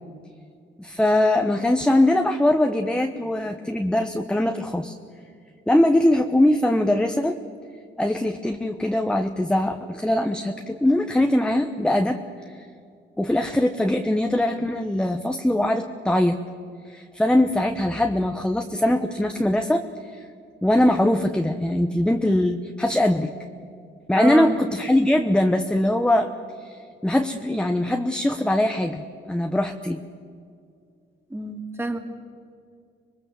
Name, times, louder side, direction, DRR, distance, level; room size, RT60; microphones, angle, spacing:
voice 1, 0.8-4.9 5.7-7.4 8.0-12.2 12.5-12.7 13.2-16.4 16.9-20.2 20.6-23.3 24.1-26.3 26.6-30.0, left 1 dB, 5° left, 6 dB, 1.1 m, -22 dB
voice 2, 24.2-24.6 31.3-32.0, right 2 dB, 10° right, 4 dB, 2.8 m, -27 dB
26.0 x 20.5 x 7.4 m, 2.3 s
cardioid pair, 90°, 20 cm